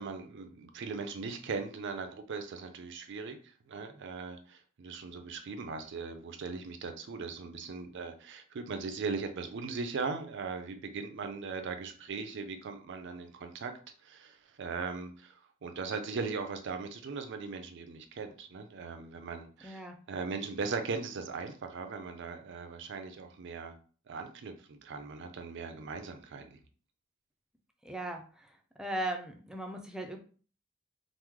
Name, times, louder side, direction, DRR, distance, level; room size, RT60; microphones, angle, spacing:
voice 1, 0.0-3.4 3.7-13.7 14.0-23.8 24.1-26.6, right 4 dB, 60° right, 7 dB, 0.4 m, -39 dB
voice 2, 19.6-20.0 27.8-28.5 28.8-30.2, right 1 dB, 5° right, 3 dB, 0.4 m, -38 dB
3.0 x 2.0 x 3.5 m, 0.40 s
head